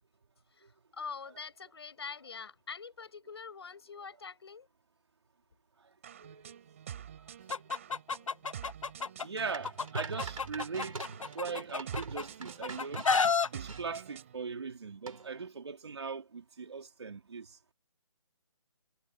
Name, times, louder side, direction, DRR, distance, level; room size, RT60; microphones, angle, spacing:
voice 1, 0.9-4.7 9.0-9.1, left 5 dB, 50° left, 6.9 m, -44 dB
sound 1, 6.0-14.4, right 9 dB, 25° right, 3.9 m, -48 dB
voice 2, 6.2-6.8 7.5-7.6 9.2-13.1 13.5-17.6, right 5 dB, 50° right, 3.7 m, -40 dB
Chicken rooster, 7.5-9.2 9.6-12.2 12.6-13.5, left 5 dB, 70° left, 1.1 m, -30 dB
sound 2, 9.5-13.8 15.1-15.5, right 4 dB, 80° right, 5.6 m, -43 dB
hypercardioid pair, 175°, 17 cm